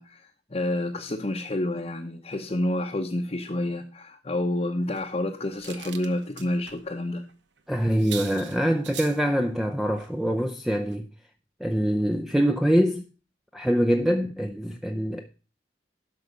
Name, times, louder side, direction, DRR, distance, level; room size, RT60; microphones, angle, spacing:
voice 1, 0.0-7.2, left 1 dB, 35° left, 0.8 m, -29 dB
sound 1, 4.9-6.8 7.2-7.3 7.6-7.7 7.9-9.2 10.0-10.2 10.5-10.7 10.9-11.0, right 9 dB, 80° right, 1.0 m, -42 dB
voice 2, 7.7-11.1 11.6-13.0 13.5-15.3, equal, ahead, 0.5 m, -24 dB
12.0 x 5.8 x 5.0 m
head